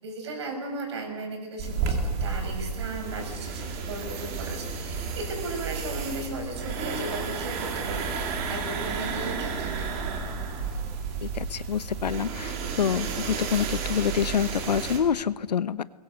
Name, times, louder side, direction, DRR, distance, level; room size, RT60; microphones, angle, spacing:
voice 1, 0.0-9.9, right 2 dB, 40° right, 3 dB, 6.6 m, -36 dB
sound 1, 1.6-15.0, right 5 dB, 20° right, 2.6 m, -32 dB
voice 2, 11.2-15.8, left 8 dB, 75° left, 17 dB, 1.0 m, -27 dB
28.5 x 22.0 x 6.6 m, 1.2 s
hypercardioid pair, 175°, 21 cm